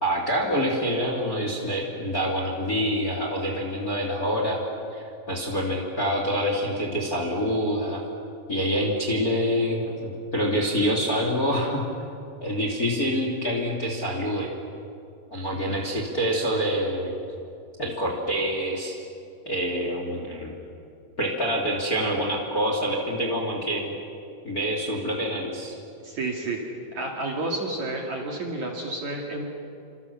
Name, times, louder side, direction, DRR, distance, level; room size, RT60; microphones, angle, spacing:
voice 1, 0.0-4.6 4.9-8.0 8.5-11.9 12.4-14.5 15.3-17.1 17.8-18.9 19.4-20.5 21.2-23.9 24.4-25.7, equal, 25° left, 1 dB, 2.7 m, -26 dB
voice 2, 26.0-26.6 26.9-29.4, right 2 dB, 45° right, 0 dB, 3.1 m, -30 dB
28.5 x 26.5 x 7.2 m, 2.5 s
omnidirectional pair, 5.3 m